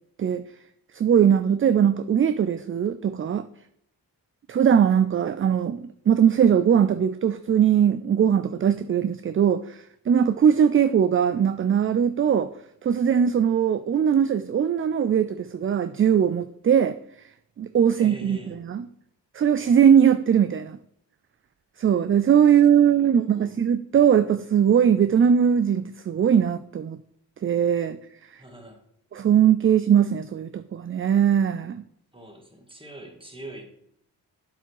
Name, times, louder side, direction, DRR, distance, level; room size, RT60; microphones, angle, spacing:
voice 1, 0.9-3.4 4.5-12.5 12.8-17.0 17.6-18.8 19.3-20.8 21.8-27.0 27.4-28.0 28.3-28.4 29.1-31.8, right 8 dB, 30° right, 0.4 m, -20 dB
voice 2, 18.0-18.6 22.8-23.5 28.4-28.8 32.1-33.6, right 1 dB, 10° right, 2.1 m, -43 dB
7.7 x 4.5 x 4.7 m
supercardioid pair, 40°, 44 cm